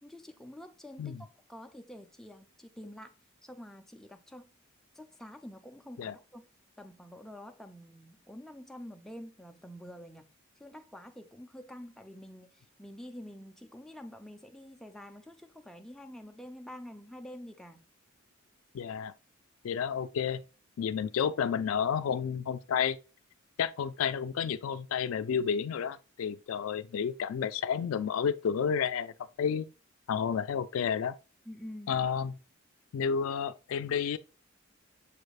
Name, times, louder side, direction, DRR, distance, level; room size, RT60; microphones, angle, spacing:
voice 1, 0.0-3.1 3.4-4.4 4.9-6.5 6.8-10.3 10.6-17.9 31.5-32.1, equal, ahead, 0.4 m, -47 dB
voice 2, 18.7-19.1 19.6-20.4 20.8-23.0 23.6-29.7 30.1-31.2 31.9-32.4 32.9-34.2, left 7 dB, 80° left, 0.3 m, -31 dB
6.9 x 3.3 x 2.3 m
head